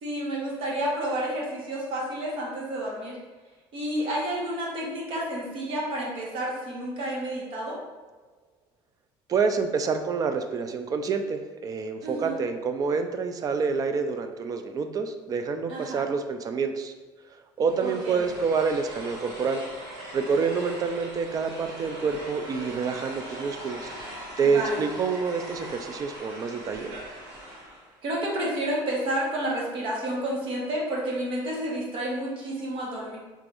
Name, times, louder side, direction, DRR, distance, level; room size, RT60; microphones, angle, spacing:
voice 1, 0.0-3.2 3.7-7.8 12.0-12.4 15.7-16.0 17.8-18.2 24.4-24.8 28.0-33.2, right 1 dB, 60° right, -3 dB, 1.1 m, -30 dB
voice 2, 9.3-16.9 17.6-19.6 20.1-23.9 24.4-26.9, right 5 dB, 35° right, 7 dB, 0.4 m, -27 dB
sound 1, 17.6-27.9, right 1 dB, 80° right, 1.4 m, -41 dB
3.5 x 3.3 x 2.5 m, 1.3 s
cardioid pair, 110°, 10 cm